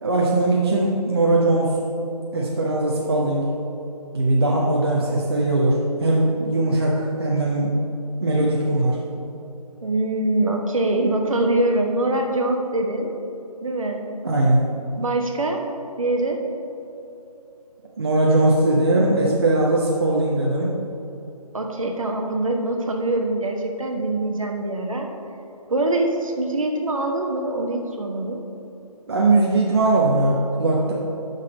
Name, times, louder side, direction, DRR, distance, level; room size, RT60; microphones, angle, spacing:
voice 1, 0.0-1.7 2.3-3.5 4.1-7.7 8.2-9.0 14.2-14.6 18.0-20.7 29.1-30.9, right 2 dB, 40° right, -3 dB, 0.9 m, -20 dB
voice 2, 9.8-13.1 13.6-14.0 15.0-15.6 16.0-16.4 21.5-25.1 25.7-28.4, right 2 dB, 55° right, 2 dB, 1.2 m, -23 dB
11.5 x 4.1 x 5.2 m, 2.8 s
figure-of-eight pair, 155°, 20 cm